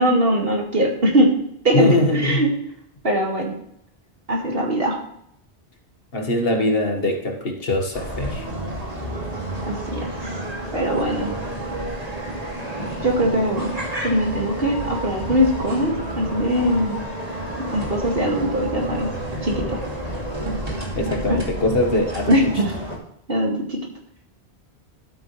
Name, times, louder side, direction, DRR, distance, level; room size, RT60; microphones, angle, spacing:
voice 1, 0.0-1.3 1.6-2.6 3.0-3.5 4.3-5.0 9.7-10.1 10.7-11.3 13.0-13.7 14.0-17.0 17.6-19.1 19.4-19.8 21.2-21.4 22.3-22.7 23.3-23.8, equal, 60° right, -1 dB, 2.5 m, -21 dB
voice 2, 1.7-2.4 6.1-8.5 21.0-22.4, left 2 dB, 60° left, 3 dB, 1.9 m, -22 dB
sound 1, 7.9-23.0, right 1 dB, 35° right, 2.6 m, -30 dB
12.0 x 9.0 x 3.3 m, 0.74 s
omnidirectional pair, 1.1 m